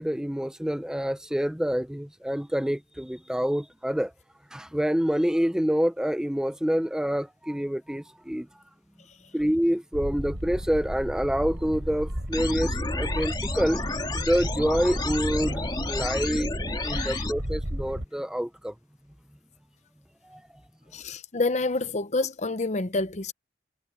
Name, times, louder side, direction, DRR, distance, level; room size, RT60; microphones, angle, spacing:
voice 1, 0.0-4.1 4.5-8.5 9.3-16.5 16.8-18.7 20.2-20.4, equal, 5° right, 0.5 m, -27 dB
sound 1, 9.9-18.0, equal, 65° right, 5.1 m, -33 dB
sound 2, 12.3-17.3, left 3 dB, 25° left, 2.3 m, -32 dB
voice 2, 16.9-17.2 20.9-23.3, left 3 dB, 40° left, 0.8 m, -28 dB
head